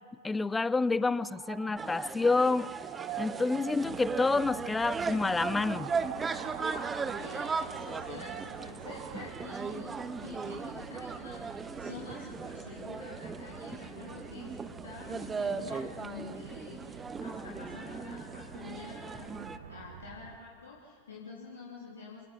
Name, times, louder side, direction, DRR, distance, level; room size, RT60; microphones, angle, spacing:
voice 1, 0.2-2.7 3.2-5.9, left 3 dB, 10° left, 20 dB, 0.5 m, -28 dB
sound 1, 1.0-10.7, right 16 dB, 40° right, 0.7 m, -46 dB
sound 2, 1.8-19.6, right 4 dB, 15° right, 1.0 m, -38 dB
sound 3, 3.8-20.4, right 6 dB, 60° right, 1.5 m, -51 dB
voice 2, 7.2-14.5 14.8-19.4 19.6-22.3, left 4 dB, 70° left, -5 dB, 3.8 m, -47 dB
28.5 x 19.0 x 5.9 m, 2.1 s
figure-of-eight pair, 90°, 0 cm